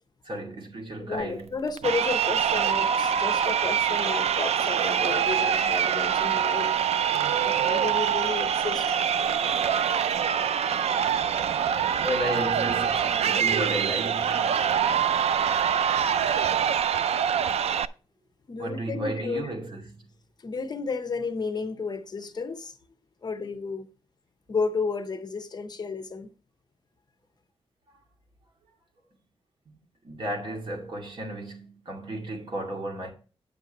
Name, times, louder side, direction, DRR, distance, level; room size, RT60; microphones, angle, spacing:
voice 1, 0.3-1.5 12.0-14.5 18.6-20.0 30.0-33.1, right 1 dB, 50° right, 2.3 m, -33 dB
voice 2, 1.0-7.0 7.4-9.0 18.5-19.5 20.4-22.7 23.2-23.9 24.5-26.3, left 4 dB, 40° left, 0.8 m, -32 dB
Crowd, 1.8-17.8, right 8 dB, 85° right, 0.4 m, -25 dB
9.0 x 6.6 x 4.1 m
wide cardioid pair, 150°, 10 cm